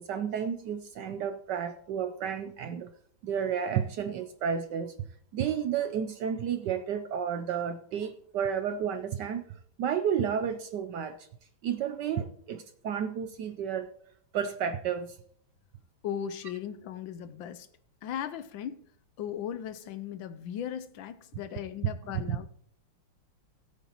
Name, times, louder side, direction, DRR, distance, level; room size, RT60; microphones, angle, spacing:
voice 1, 0.0-2.9 3.2-4.9 5.3-9.4 9.8-11.3 11.6-13.9 14.3-15.2 22.3-22.4, right 8 dB, 70° right, 9 dB, 1.1 m, -31 dB
voice 2, 16.0-17.7 18.0-18.8 19.2-22.5, left 9 dB, 75° left, 12 dB, 1.3 m, -37 dB
17.0 x 8.2 x 3.0 m, 0.63 s
omnidirectional pair, 2.3 m